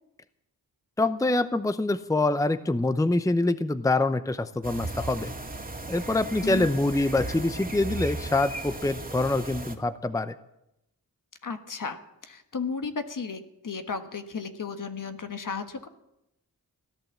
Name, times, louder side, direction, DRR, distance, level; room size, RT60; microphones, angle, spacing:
voice 1, 1.0-5.3 5.9-10.3, left 2 dB, 10° left, 12 dB, 0.7 m, -25 dB
sound 1, 4.6-9.8, right 2 dB, 25° right, 2.1 m, -36 dB
voice 2, 6.4-6.7 11.4-15.9, left 5 dB, 60° left, 7 dB, 1.5 m, -34 dB
17.0 x 11.5 x 7.3 m, 0.85 s
cardioid pair, 65°, 37 cm